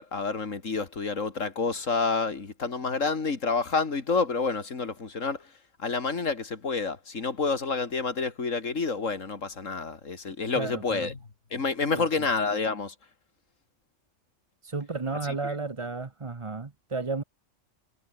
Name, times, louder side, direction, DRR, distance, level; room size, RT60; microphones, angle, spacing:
voice 1, 0.0-5.5 5.8-11.2 11.5-12.9 15.4-15.5, left 4 dB, 90° left, 2.8 m, -29 dB
voice 2, 10.5-11.1 11.9-12.0 14.6-17.2, right 3 dB, 25° right, 1.0 m, -33 dB
omnidirectional pair, 1.3 m